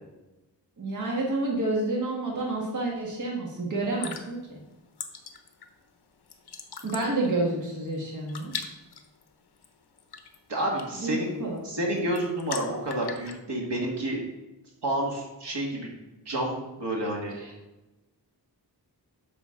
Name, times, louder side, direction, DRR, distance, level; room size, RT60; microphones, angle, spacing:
voice 1, 0.8-4.6 6.8-8.5 11.0-11.6 17.4-17.5, right 2 dB, 45° right, -2 dB, 1.6 m, -29 dB
sound 1, 3.8-13.4, left 6 dB, 65° left, 0.8 m, -42 dB
voice 2, 10.5-14.2 14.8-15.9 16.3-17.4, right 1 dB, 75° right, -1 dB, 2.0 m, -29 dB
8.7 x 6.1 x 3.7 m, 1.0 s
wide cardioid pair, 150°, 41 cm